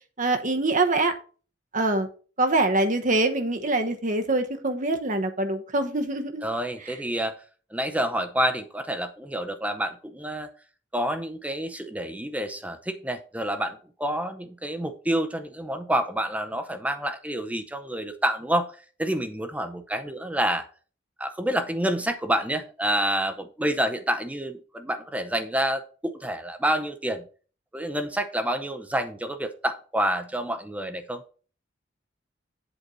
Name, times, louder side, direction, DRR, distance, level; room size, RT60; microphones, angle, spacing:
voice 1, 0.2-1.1 1.7-2.1 2.4-6.4 6.9-7.0, right 2 dB, 45° right, 6 dB, 1.0 m, -24 dB
voice 2, 6.4-7.4 7.7-10.5 10.9-18.7 19.0-20.7 21.2-27.3 27.7-31.2, right 1 dB, 10° right, 7 dB, 0.6 m, -28 dB
8.0 x 4.2 x 6.2 m, 0.39 s
head